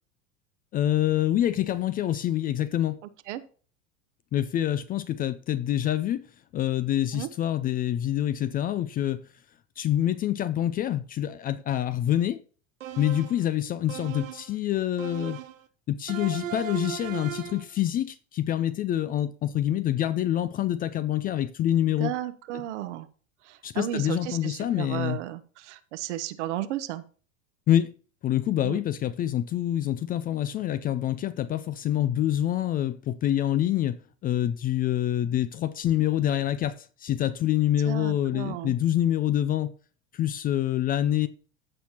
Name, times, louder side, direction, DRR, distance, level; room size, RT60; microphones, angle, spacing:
voice 1, 0.7-3.0 4.3-6.2 6.5-9.2 9.8-12.4 13.0-15.4 15.9-22.1 23.6-25.2 27.7-27.9 28.2-39.7 40.1-41.3, left 12 dB, 25° left, 0.3 m, -26 dB
sound 1, 12.8-13.5 13.9-14.5 15.0-15.6 16.1-17.7, right 11 dB, 85° right, 0.7 m, -37 dB
voice 2, 21.7-23.1 23.4-27.0 28.6-28.8 37.9-38.8, right 13 dB, 65° right, 0.9 m, -34 dB
14.5 x 5.7 x 2.9 m
hypercardioid pair, 90°, 38 cm